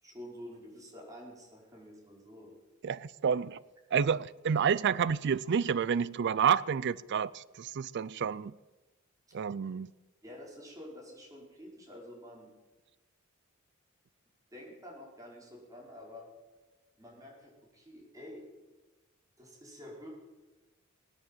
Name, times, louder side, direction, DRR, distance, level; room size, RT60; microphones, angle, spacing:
voice 1, 0.0-2.5 10.2-12.5 14.5-16.3 17.0-18.4 19.4-20.1, left 1 dB, 15° right, 5.0 m, -49 dB
voice 2, 2.8-3.6 3.9-8.5 9.3-9.9, right 7 dB, 55° right, 0.4 m, -29 dB
18.5 x 10.5 x 7.4 m
head